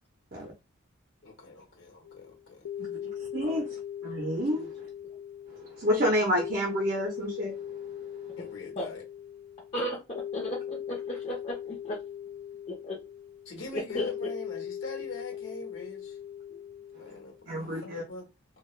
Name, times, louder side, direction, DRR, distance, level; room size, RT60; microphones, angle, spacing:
voice 1, 1.2-2.7 3.4-3.6 4.5-4.7 8.4-9.1 13.4-16.2 16.9-18.3, left 2 dB, 65° left, 1.1 m, -43 dB
sound 1, 2.0-17.4, left 9 dB, 90° left, 0.3 m, -40 dB
voice 2, 3.2-3.7 4.0-4.9 5.5-8.3 16.9-17.1 17.5-18.0, equal, 45° right, 0.6 m, -30 dB
voice 3, 9.7-12.0 12.7-13.0 13.7-14.1, equal, 30° left, 0.6 m, -34 dB
2.2 x 2.2 x 3.1 m
head